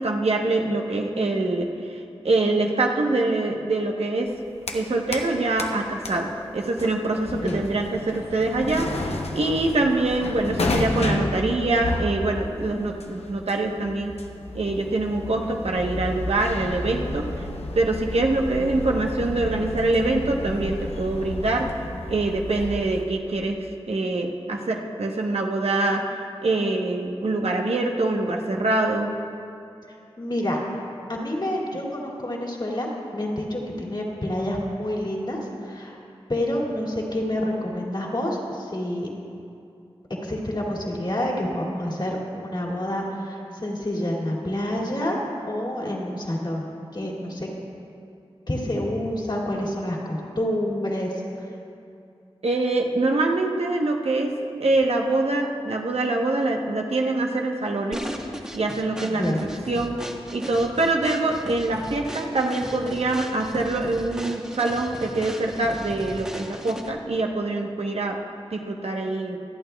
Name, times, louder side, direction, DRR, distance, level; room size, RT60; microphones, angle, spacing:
voice 1, 0.0-4.3 4.7-14.1 14.5-17.5 17.7-21.7 22.1-23.6 23.9-29.1 52.4-54.3 54.6-58.0 58.5-59.3 59.7-60.0 60.3-68.2 68.5-69.4, right 2 dB, 80° right, 1 dB, 1.0 m, -24 dB
sound 1, 4.3-5.3 5.6-23.0, left 2 dB, 85° left, 0.8 m, -32 dB
voice 2, 7.1-7.6 30.2-30.8 31.1-36.0 36.3-39.1 40.2-45.2 45.5-47.5 48.5-51.5 59.0-59.5, left 1 dB, 50° left, -3 dB, 2.4 m, -28 dB
sound 2, 57.9-67.1, equal, 5° right, 1.0 m, -37 dB
25.0 x 9.0 x 2.3 m, 2.6 s
cardioid pair, 45°, 10 cm